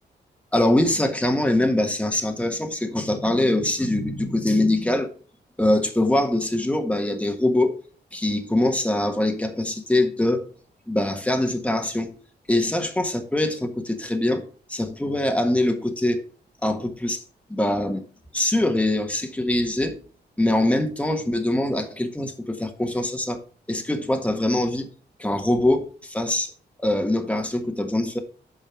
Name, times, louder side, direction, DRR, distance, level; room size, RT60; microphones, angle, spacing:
voice 1, 0.5-5.1 5.6-7.8 8.1-10.5 10.9-12.1 12.5-14.4 14.7-16.2 16.6-17.2 17.5-18.0 18.3-20.0 20.4-23.4 23.7-24.9 25.2-26.5 26.8-28.2, left 1 dB, 5° left, 1.6 m, -23 dB
8.6 x 5.4 x 5.9 m
cardioid pair, 85°, 18 cm